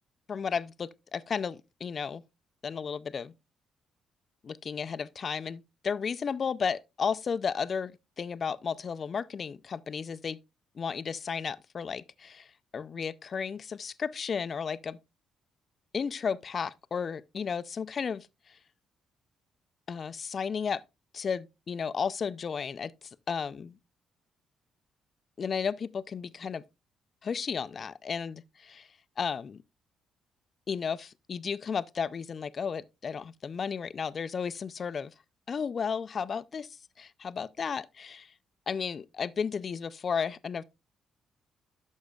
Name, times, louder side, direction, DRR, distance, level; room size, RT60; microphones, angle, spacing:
voice 1, 0.3-2.2 2.6-3.3 4.4-10.4 10.8-12.5 12.7-15.0 15.9-18.3 19.9-20.8 21.1-22.9 23.3-23.7 25.4-26.6 27.2-28.9 29.2-29.6 30.7-35.1 35.5-36.7 37.0-38.3 38.7-40.6, left 6 dB, 45° left, 0.4 m, -33 dB
11.5 x 6.3 x 2.3 m
cardioid pair, 90°, 0 cm